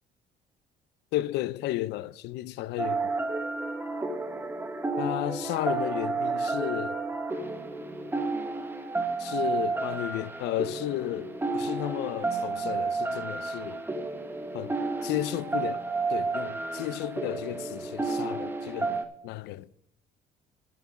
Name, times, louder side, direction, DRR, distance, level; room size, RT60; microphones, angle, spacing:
voice 1, 1.1-3.1 5.0-7.0 9.2-13.8 14.5-14.7 15.0-15.8 16.1-19.7, left 15 dB, 80° left, 0.5 m, -33 dB
sound 1, 2.8-19.0, right 3 dB, 15° right, 1.2 m, -31 dB
11.5 x 8.3 x 4.8 m
cardioid pair, 110°, 17 cm